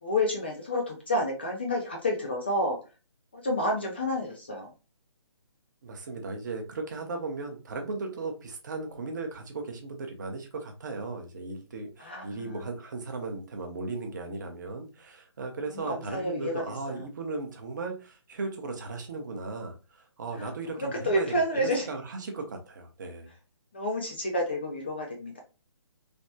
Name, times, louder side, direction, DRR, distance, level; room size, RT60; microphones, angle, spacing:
voice 1, 0.0-2.8 3.3-4.7 12.0-12.6 15.7-17.0 20.4-20.5 20.9-21.9 23.7-25.4, left 1 dB, 20° left, 1 dB, 0.3 m, -29 dB
voice 2, 5.8-23.3, right 3 dB, 40° right, 4 dB, 0.7 m, -36 dB
3.3 x 2.1 x 2.7 m, 0.32 s
hypercardioid pair, 165°, 15 cm